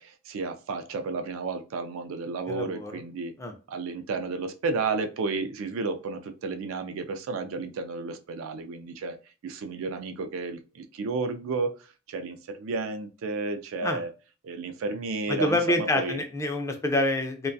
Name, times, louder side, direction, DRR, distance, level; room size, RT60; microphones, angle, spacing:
voice 1, 0.0-3.3 3.7-9.2 9.4-11.7 12.1-14.1 14.4-16.2, right 3 dB, 80° right, 0.4 m, -32 dB
voice 2, 2.5-3.0 3.4-3.5 13.8-14.0 15.3-17.5, left 1 dB, 15° left, 0.3 m, -27 dB
2.2 x 2.2 x 2.5 m
head